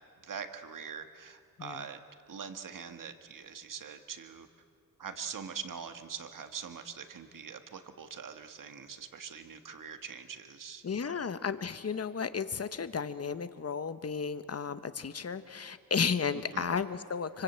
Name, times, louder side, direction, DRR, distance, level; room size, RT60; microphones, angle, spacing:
voice 1, 0.2-2.0 2.3-4.5 5.0-10.8 16.3-16.7, right 6 dB, 65° right, 8 dB, 1.7 m, -43 dB
voice 2, 10.8-17.4, left 6 dB, 45° left, 12 dB, 1.2 m, -33 dB
25.5 x 24.0 x 8.1 m, 2.3 s
cardioid pair, 80°, 34 cm